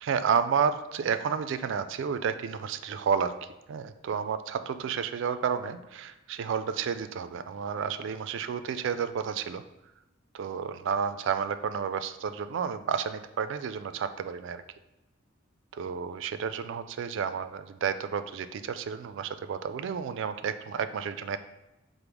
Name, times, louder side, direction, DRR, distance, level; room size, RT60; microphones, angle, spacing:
voice 1, 0.0-9.6 10.3-14.6 15.7-21.4, right 7 dB, 65° right, 11 dB, 0.3 m, -31 dB
5.1 x 2.0 x 4.5 m, 0.98 s
head